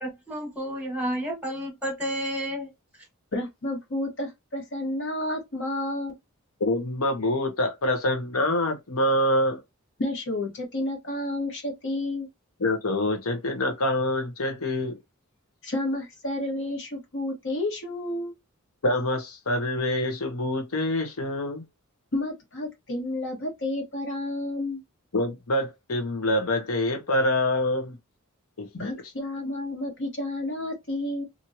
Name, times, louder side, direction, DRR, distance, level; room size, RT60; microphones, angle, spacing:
voice 1, 0.0-2.7, equal, 5° right, 1.3 m, -31 dB
voice 2, 3.3-6.1 10.0-12.3 15.6-18.3 22.1-24.8 28.7-31.2, left 1 dB, 60° left, 1.3 m, -30 dB
voice 3, 6.6-9.6 12.6-15.0 18.8-21.6 25.1-28.0 28.6-28.9, left 1 dB, 80° left, 0.9 m, -26 dB
3.0 x 2.6 x 2.7 m
head